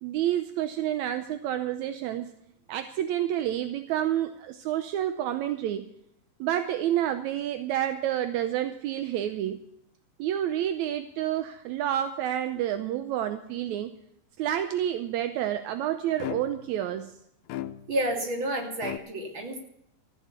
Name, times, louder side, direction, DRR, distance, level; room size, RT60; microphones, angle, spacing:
voice 1, 0.0-2.3 2.7-5.9 6.4-9.6 10.2-13.9 14.4-17.1, right 11 dB, 75° right, 9 dB, 1.8 m, -29 dB
sound 1, 16.2-16.8 17.5-18.2 18.8-19.0, left 13 dB, 80° left, 2.4 m, -36 dB
voice 2, 17.9-19.6, right 1 dB, 35° right, 2 dB, 3.3 m, -30 dB
14.5 x 9.5 x 8.2 m, 0.74 s
omnidirectional pair, 3.9 m